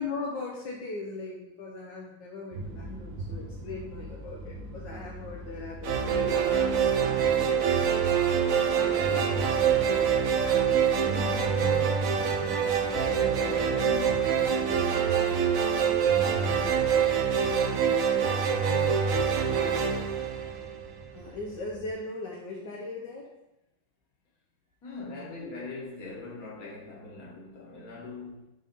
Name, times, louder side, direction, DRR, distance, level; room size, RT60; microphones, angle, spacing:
voice 1, 0.0-7.5 13.2-13.3 19.5-19.8 21.1-23.3, left 3 dB, 70° left, -3 dB, 1.6 m, -39 dB
sound 1, 2.5-21.9, right 1 dB, 85° right, 1.6 m, -43 dB
sound 2, 5.8-21.1, right 7 dB, 65° right, 0.9 m, -25 dB
voice 2, 8.7-12.2 12.7-15.7 17.3-18.3 24.8-28.5, left 2 dB, 50° left, -4 dB, 2.1 m, -43 dB
7.9 x 3.7 x 5.4 m, 0.92 s
omnidirectional pair, 2.0 m